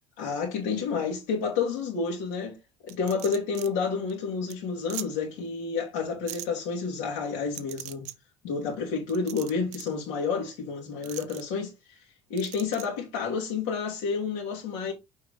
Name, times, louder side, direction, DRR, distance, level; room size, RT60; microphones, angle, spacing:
voice 1, 0.2-2.6 2.8-8.0 8.4-12.0 12.3-14.9, left 5 dB, 85° left, 2.4 m, -30 dB
sound 1, 2.9-3.7 4.1-4.2 4.5-4.6 4.9-5.1 6.3-6.5 7.5-8.1 9.1-9.9 11.0-11.4 12.4-12.9, right 15 dB, 65° right, 0.7 m, -40 dB
6.4 x 4.8 x 3.7 m
cardioid pair, 170°, 12 cm